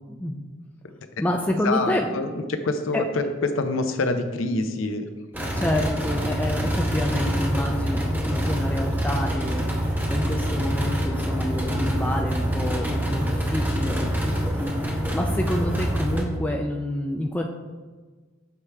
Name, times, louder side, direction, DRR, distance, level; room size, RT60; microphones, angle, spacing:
voice 1, 0.1-0.4 1.2-2.1 2.9-3.0 5.5-17.4, left 1 dB, 10° left, 2 dB, 0.3 m, -28 dB
voice 2, 1.6-5.1, left 2 dB, 85° left, 8 dB, 0.6 m, -26 dB
sound 1, 5.3-16.2, equal, 10° right, 0.7 m, -25 dB
6.9 x 4.7 x 3.3 m, 1.4 s
head